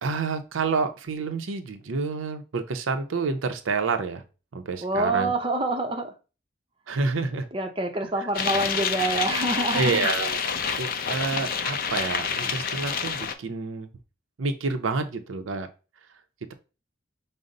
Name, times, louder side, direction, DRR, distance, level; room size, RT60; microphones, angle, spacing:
voice 1, 0.0-4.2 4.5-5.3 6.9-7.5 9.7-10.4 10.8-13.9 14.4-15.7, right 4 dB, 90° right, 7 dB, 0.6 m, -28 dB
voice 2, 4.8-6.1 7.5-10.1, right 2 dB, 25° right, 3 dB, 0.6 m, -26 dB
sound 1, 8.3-13.3, left 6 dB, 45° left, 0.4 m, -28 dB
5.2 x 2.0 x 3.8 m, 0.31 s
head